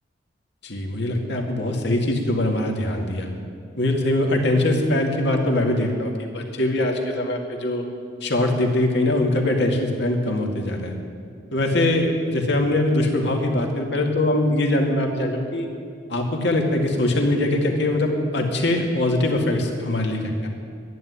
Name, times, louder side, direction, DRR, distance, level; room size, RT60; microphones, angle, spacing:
voice 1, 0.6-3.3 3.8-7.8 8.2-10.9 11.5-15.7 16.1-20.5, left 1 dB, 60° left, 2 dB, 2.1 m, -22 dB
12.0 x 10.5 x 9.8 m, 2.2 s
head